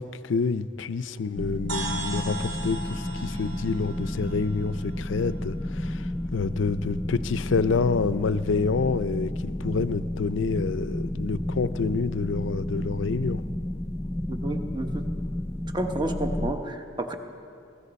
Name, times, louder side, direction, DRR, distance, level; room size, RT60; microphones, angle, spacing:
voice 1, 0.0-13.4, left 4 dB, 75° left, 15 dB, 0.5 m, -28 dB
sound 1, 1.4-16.5, left 1 dB, 15° left, 0.3 m, -31 dB
sound 2, 1.7-5.5, right 2 dB, 80° right, 2.1 m, -37 dB
voice 2, 14.3-15.1 15.7-17.1, right 1 dB, 25° right, 5 dB, 1.0 m, -30 dB
21.0 x 15.0 x 4.2 m, 2.5 s
head